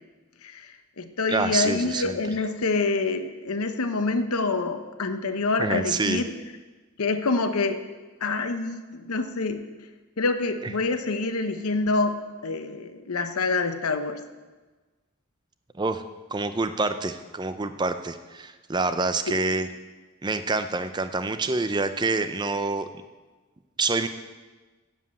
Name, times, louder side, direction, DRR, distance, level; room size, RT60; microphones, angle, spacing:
voice 1, 0.4-6.3 7.0-7.8 8.2-9.6 10.2-14.2, left 3 dB, 80° left, 8 dB, 0.8 m, -26 dB
voice 2, 1.3-2.2 5.6-6.2 15.8-16.0 16.3-19.7 20.2-22.9 23.8-24.1, right 3 dB, 20° right, 10 dB, 0.4 m, -26 dB
7.5 x 7.4 x 8.3 m, 1.3 s
head